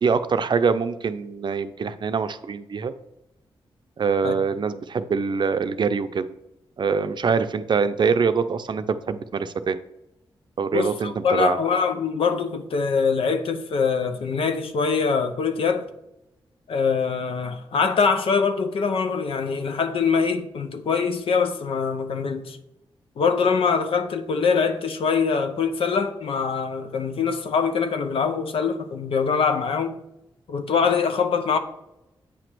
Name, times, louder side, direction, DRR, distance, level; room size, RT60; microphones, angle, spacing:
voice 1, 0.0-2.9 4.0-6.3 6.8-9.8 10.6-11.6, right 5 dB, 55° right, 0.5 m, -24 dB
voice 2, 10.7-15.9 16.7-22.6 23.2-30.0 30.5-31.6, left 5 dB, 75° left, 0.7 m, -23 dB
8.4 x 3.0 x 6.0 m
cardioid pair, 70°, 10 cm